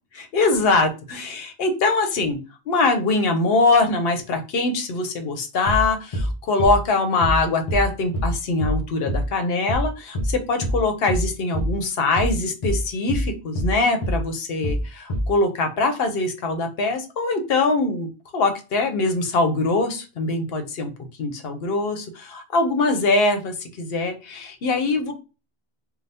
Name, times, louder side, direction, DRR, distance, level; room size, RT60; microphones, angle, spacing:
voice 1, 0.1-2.4 2.7-20.9 21.2-25.1, left 3 dB, 65° left, 6 dB, 0.9 m, -23 dB
sound 1, 5.7-5.9 6.1-6.3 6.6-6.8 7.2-7.4 7.7-7.9 8.1-8.3 8.6-8.8 9.1-9.3 9.7-9.9 10.1-10.3 10.6-10.8 11.1-11.3 11.5-11.7 12.2-12.4 12.6-12.8 13.1-13.3 13.5-13.7 14.0-14.2 14.6-14.8 15.1-15.3, equal, 35° left, 0.7 m, -24 dB
2.7 x 2.3 x 3.2 m, 0.30 s
omnidirectional pair, 1.1 m